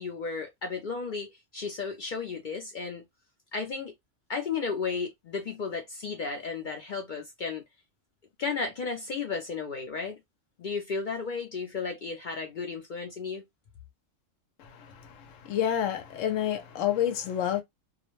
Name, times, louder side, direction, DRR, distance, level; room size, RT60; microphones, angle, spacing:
voice 1, 0.0-3.0 3.5-3.9 4.3-7.6 8.4-10.2 10.6-13.4, left 5 dB, 60° left, 0.5 m, -34 dB
voice 2, 15.4-17.6, left 10 dB, 80° left, 1.0 m, -28 dB
2.4 x 2.1 x 2.9 m
omnidirectional pair, 1.3 m